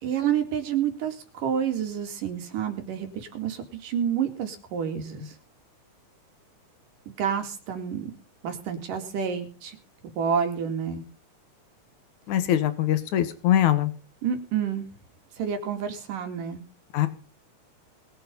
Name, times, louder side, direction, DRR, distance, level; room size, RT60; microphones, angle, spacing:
voice 1, 0.0-5.3 7.1-8.1 8.4-9.8 10.0-11.0 14.2-14.9 15.4-16.6, right 8 dB, 85° right, 6 dB, 4.0 m, -29 dB
voice 2, 12.3-13.9 16.9-17.1, left 12 dB, 65° left, 11 dB, 2.9 m, -22 dB
21.5 x 7.8 x 5.4 m, 0.39 s
omnidirectional pair, 3.7 m